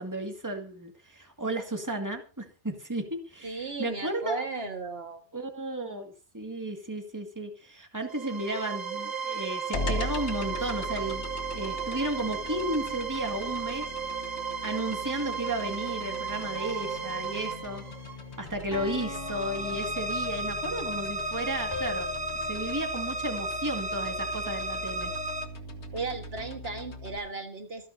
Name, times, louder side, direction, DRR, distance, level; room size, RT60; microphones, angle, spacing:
voice 1, 0.0-4.5 5.3-11.2 11.5-13.9 14.6-17.8 18.4-22.1 22.4-25.1, right 1 dB, 15° right, 4 dB, 2.0 m, -33 dB
voice 2, 3.4-5.2 25.9-27.9, right 3 dB, 60° right, 5 dB, 1.8 m, -35 dB
sound 1, 8.1-25.5, right 3 dB, 40° right, 1.7 m, -34 dB
sound 2, 9.7-27.2, left 2 dB, 75° left, 1.9 m, -40 dB
sound 3, 16.6-17.6 18.7-20.6 21.7-22.1, left 2 dB, 20° left, 3.3 m, -40 dB
25.5 x 10.0 x 2.7 m, 0.33 s
omnidirectional pair, 1.1 m